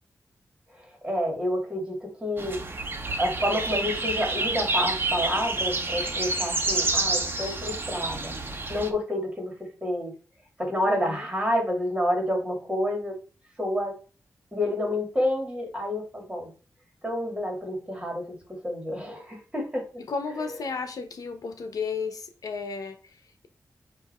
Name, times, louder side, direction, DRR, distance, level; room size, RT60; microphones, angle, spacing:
voice 1, 0.7-2.6 3.2-8.3 8.7-9.5 9.8-10.1 10.6-13.2 13.6-14.0 14.5-16.5 17.0-20.0, left 1 dB, 15° right, 2.5 m, -29 dB
sound 1, 2.4-8.9, right 2 dB, 35° right, 1.2 m, -28 dB
voice 2, 10.8-11.2 20.1-23.5, left 5 dB, 80° left, 1.0 m, -33 dB
7.9 x 2.9 x 4.3 m
wide cardioid pair, 125°, 6 cm